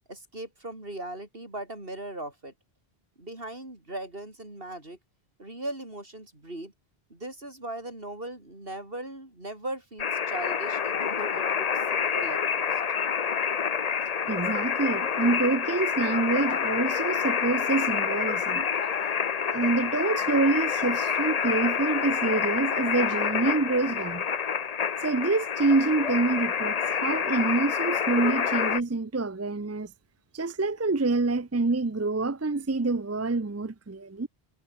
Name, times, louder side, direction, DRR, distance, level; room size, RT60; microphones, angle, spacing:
voice 1, 0.1-2.5 3.2-5.0 5.4-6.7 7.1-12.8, right 1 dB, 65° right, 6.1 m, -39 dB
sound 1, 10.0-28.8, left 7 dB, 45° left, 0.7 m, -28 dB
voice 2, 14.3-18.7 19.5-24.2 25.0-29.9 30.3-34.3, right 3 dB, 20° right, 0.5 m, -26 dB
omnidirectional pair, 1.1 m